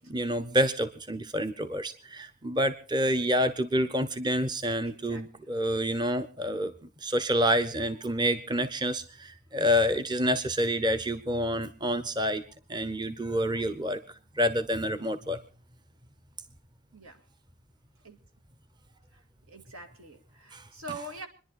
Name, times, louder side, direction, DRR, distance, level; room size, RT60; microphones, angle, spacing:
voice 1, 0.1-6.7 7.0-12.4 12.7-14.0 14.4-15.4 20.5-20.6, equal, 20° right, 0.7 m, -28 dB
voice 2, 4.8-5.2 16.9-17.2 18.0-18.2 19.5-21.3, right 2 dB, 85° right, 2.2 m, -44 dB
26.0 x 10.5 x 4.1 m
head